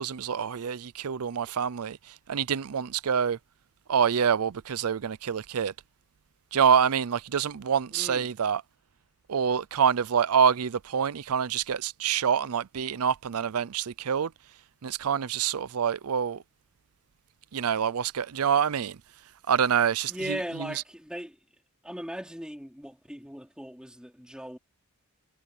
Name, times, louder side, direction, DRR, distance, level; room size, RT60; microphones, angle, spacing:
voice 1, 0.0-2.0 2.3-3.4 3.9-5.7 6.5-8.6 9.3-14.3 14.8-16.4 17.5-19.0 19.5-20.8, right 7 dB, 80° right, 0.5 m, -26 dB
voice 2, 7.9-8.3 20.1-21.4 21.8-24.6, equal, 5° right, 4.3 m, -38 dB
head